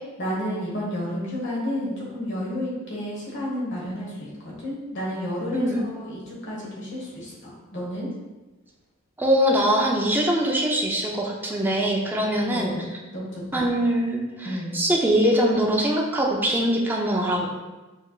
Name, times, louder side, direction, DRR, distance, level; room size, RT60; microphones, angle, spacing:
voice 1, 0.2-8.1 12.3-13.7 14.4-14.8, equal, 60° left, -5 dB, 1.4 m, -31 dB
voice 2, 9.2-12.7 13.5-17.5, equal, 10° right, -2 dB, 0.6 m, -22 dB
6.3 x 3.4 x 2.4 m, 1.2 s
head